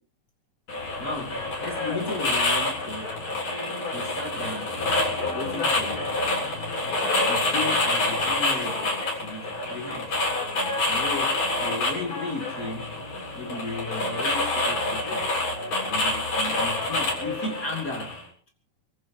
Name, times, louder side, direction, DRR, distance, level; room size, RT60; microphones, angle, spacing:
sound 1, 0.7-18.2, left 2 dB, 60° left, 9.0 m, -27 dB
voice 1, 1.0-3.2 3.9-4.7 5.3-6.1 7.2-10.2 10.9-13.0 13.3-15.3 15.9-18.2, left 3 dB, 30° left, 3.0 m, -35 dB
29.0 x 15.0 x 2.8 m
omnidirectional pair, 3.4 m